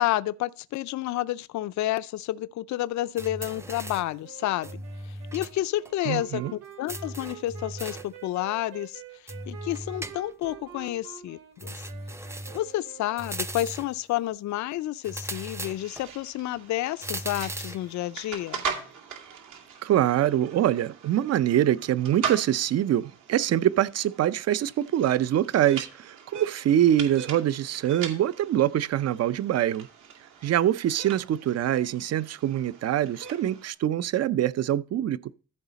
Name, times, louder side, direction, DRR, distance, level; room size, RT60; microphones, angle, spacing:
voice 1, 0.0-4.7 5.0-11.8 12.5-18.6, left 14 dB, 70° left, 0.5 m, -30 dB
sound 1, 3.2-4.2 4.6-5.6 5.8-5.9 6.9-8.2 9.3-10.5 11.6-12.7 13.2-14.0 15.0-16.1 17.0-17.9, right 1 dB, 10° right, 0.6 m, -37 dB
Wind instrument woodwind instrument, 4.2-13.7, right 10 dB, 90° right, 2.2 m, -47 dB
voice 2, 6.1-6.5 19.8-29.9 30.4-35.2, right 11 dB, 55° right, 0.6 m, -24 dB
sound 2, 15.3-33.7, right 6 dB, 75° right, 2.4 m, -40 dB
14.0 x 4.9 x 4.0 m
cardioid pair, 90°, 30 cm